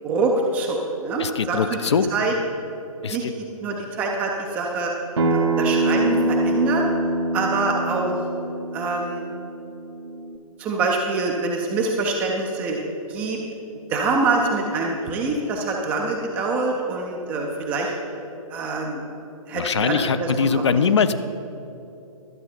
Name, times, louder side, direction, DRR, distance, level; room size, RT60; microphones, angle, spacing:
voice 1, 0.0-1.8 2.1-2.3 3.1-3.2 3.6-4.9 5.3-6.8 7.3-8.2 8.7-9.2 10.6-12.8 13.1-13.4 13.9-17.9 18.5-19.1 19.5-20.8, right 3 dB, 10° right, 0 dB, 0.3 m, -25 dB
voice 2, 1.2-2.1 3.0-3.3 19.5-21.2, left 6 dB, 50° left, 13 dB, 0.5 m, -22 dB
Acoustic guitar, 5.2-10.4, right 2 dB, 50° right, 1.0 m, -24 dB
12.0 x 7.6 x 4.3 m, 2.8 s
figure-of-eight pair, 130°, 19 cm